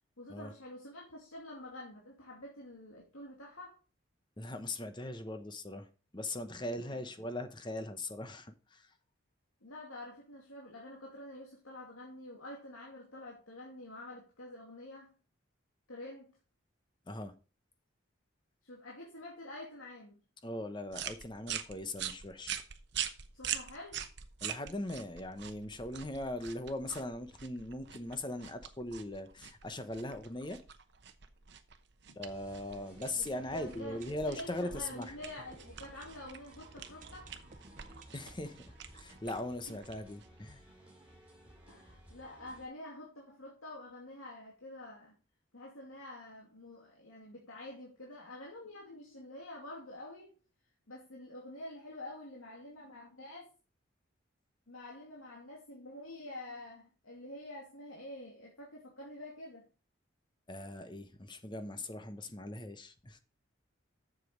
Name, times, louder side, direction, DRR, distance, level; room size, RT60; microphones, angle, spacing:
voice 1, 0.2-3.8 6.7-7.0 9.6-15.1 15.9-16.3 18.6-20.2 23.3-24.0 33.1-37.3 39.7-39.8 41.7-45.2 45.5-50.4 50.9-53.5 54.7-59.7, left 1 dB, 90° left, 2.6 m, -48 dB
voice 2, 4.4-5.9 6.1-8.9 17.1-17.3 20.4-22.6 24.4-30.6 32.2-35.1 38.1-40.6 60.5-63.2, left 1 dB, 20° left, 0.9 m, -40 dB
sound 1, 20.9-40.5, right 9 dB, 55° right, 0.9 m, -44 dB
sound 2, 32.2-42.7, right 1 dB, 5° right, 2.9 m, -58 dB
sound 3, 32.5-40.3 40.6-40.7 40.8-40.9 41.5-41.6, right 3 dB, 40° right, 1.0 m, -59 dB
7.5 x 7.3 x 5.1 m
head